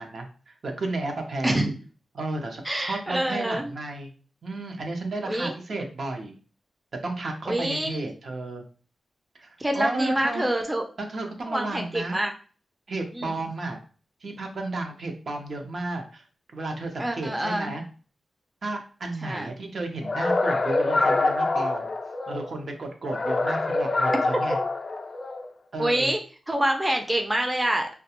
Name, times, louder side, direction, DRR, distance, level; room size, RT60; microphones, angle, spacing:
voice 1, 0.0-1.6 2.1-4.1 4.4-6.4 7.0-8.6 9.3-10.4 11.0-12.2 12.9-13.8 14.2-16.2 16.5-17.8 18.6-21.9 22.3-24.6 25.7-26.1, right 2 dB, 65° right, 3 dB, 0.6 m, -33 dB
voice 2, 2.6-3.7 5.2-5.5 7.5-8.1 9.6-10.8 11.5-12.3 13.1-13.3 17.0-17.7 19.2-19.5 25.8-26.2 26.5-27.9, right 1 dB, 15° right, 3 dB, 0.4 m, -26 dB
sound 1, 20.0-22.5 23.1-25.5, left 2 dB, 45° left, 0.3 m, -25 dB
2.3 x 2.2 x 2.8 m, 0.38 s
cardioid pair, 70°, 0 cm